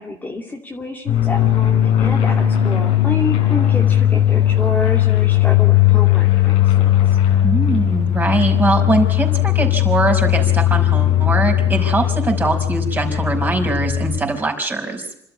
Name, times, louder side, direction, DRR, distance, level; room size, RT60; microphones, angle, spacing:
voice 1, 0.0-7.2, left 2 dB, 15° left, 0 dB, 2.5 m, -28 dB
sound 1, 1.1-14.2, left 12 dB, 85° left, 3.9 m, -17 dB
voice 2, 7.4-15.1, right 2 dB, 20° right, 2 dB, 5.2 m, -21 dB
27.0 x 13.0 x 9.8 m, 0.77 s
cardioid pair, 110°, 10 cm